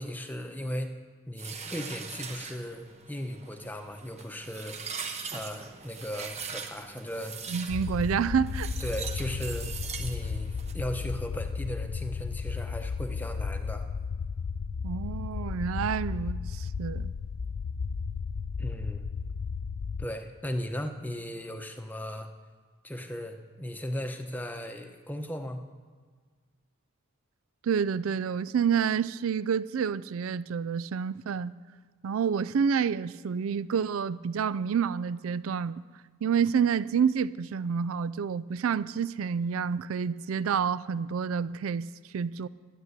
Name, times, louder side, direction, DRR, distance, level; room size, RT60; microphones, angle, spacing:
voice 1, 0.0-4.8 5.3-7.4 8.8-13.9 18.6-19.0 20.0-22.3 22.8-25.6, equal, 10° left, 6 dB, 0.9 m, -37 dB
sound 1, 1.4-10.7, right 6 dB, 30° right, 1.1 m, -41 dB
voice 2, 7.5-8.7 14.8-17.1 27.6-31.5 32.0-35.8 36.2-41.9 42.1-42.5, right 7 dB, 80° right, 18 dB, 0.4 m, -28 dB
sound 2, 7.7-20.1, left 5 dB, 65° left, 0.4 m, -34 dB
12.5 x 10.5 x 8.1 m, 1.5 s
head